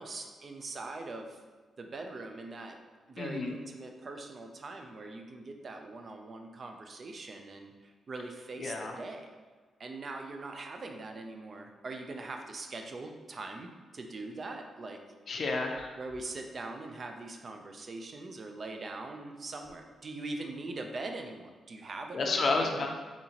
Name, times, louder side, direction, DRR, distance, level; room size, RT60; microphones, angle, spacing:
voice 1, 0.0-1.4 1.8-2.8 3.1-9.3 9.8-15.0 16.0-22.9, right 2 dB, 45° right, 4 dB, 0.4 m, -42 dB
voice 2, 3.2-3.5 8.6-9.0 15.3-15.9 22.1-22.9, left 3 dB, 50° left, 2 dB, 0.4 m, -30 dB
4.1 x 2.8 x 2.8 m, 1.4 s
cardioid pair, 100°, 0 cm